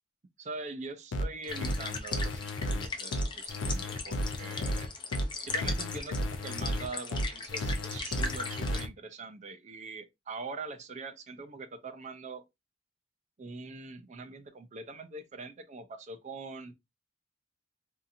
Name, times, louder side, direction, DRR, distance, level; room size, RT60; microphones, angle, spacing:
voice 1, 0.4-4.9 5.4-12.4 13.4-16.7, right 3 dB, 40° right, 0.4 m, -43 dB
sound 1, 1.1-8.9, equal, 80° left, 0.4 m, -33 dB
sound 2, 1.4-8.8, left 4 dB, 25° left, 0.5 m, -39 dB
2.7 x 2.5 x 2.4 m
head